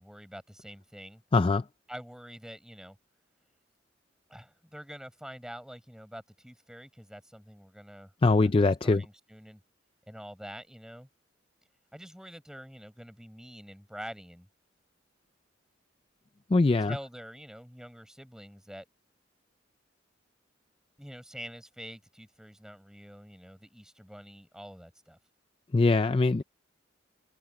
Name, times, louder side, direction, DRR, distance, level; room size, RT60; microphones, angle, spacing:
voice 1, 0.0-1.2 1.9-3.0 4.3-9.6 10.1-11.1 11.9-14.5 16.8-18.9 21.0-25.2, equal, 5° right, 7.8 m, -46 dB
voice 2, 1.3-1.6 8.2-9.0 16.5-16.9 25.7-26.4, left 3 dB, 25° left, 0.4 m, -22 dB
head